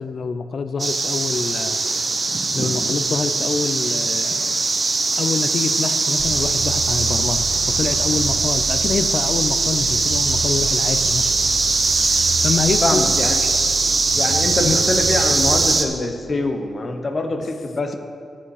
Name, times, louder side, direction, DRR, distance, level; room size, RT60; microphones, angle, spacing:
voice 1, 0.0-1.8 2.5-4.5 5.2-11.3 12.4-13.1 14.6-14.8 17.4-17.5, left 5 dB, 65° left, 10 dB, 0.5 m, -26 dB
sound 1, 0.8-15.8, right 3 dB, 40° right, 0.8 m, -21 dB
sound 2, 6.2-15.7, right 6 dB, 90° right, 0.5 m, -31 dB
voice 2, 12.8-13.4 14.2-17.9, left 2 dB, 40° left, 5 dB, 1.0 m, -24 dB
14.5 x 5.7 x 4.8 m, 2.2 s
cardioid pair, 95°, 0 cm